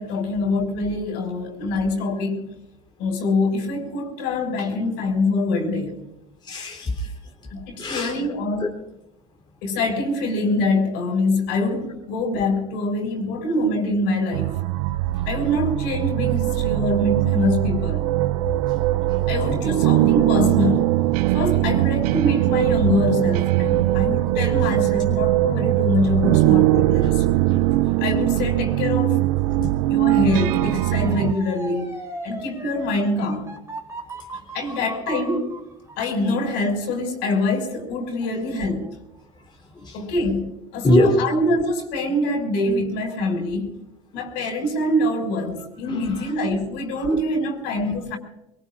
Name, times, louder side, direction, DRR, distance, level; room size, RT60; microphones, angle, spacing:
voice 1, 0.0-2.5 3.0-5.9 7.5-8.7 9.6-14.6 15.3-18.0 19.3-20.9 21.3-27.2 28.0-29.2 29.9-31.9 32.2-33.5 34.5-35.6 36.0-38.9 39.9-43.8 44.1-48.2, left 2 dB, 70° left, 5.9 m, -24 dB
voice 2, 6.4-7.1 7.8-8.2 8.6-8.7 27.0-27.1 27.5-27.9 29.6-29.7 39.8-40.0 40.8-41.1 45.8-46.3 47.8-48.0, left 1 dB, 25° left, 3.6 m, -24 dB
sound 1, 14.3-31.3, right 17 dB, 85° right, 0.5 m, -21 dB
Motor vehicle (road) / Siren, 30.3-39.2 39.6-40.0, right 3 dB, 15° right, 3.2 m, -39 dB
24.0 x 22.5 x 2.5 m
supercardioid pair, 90°, 19 cm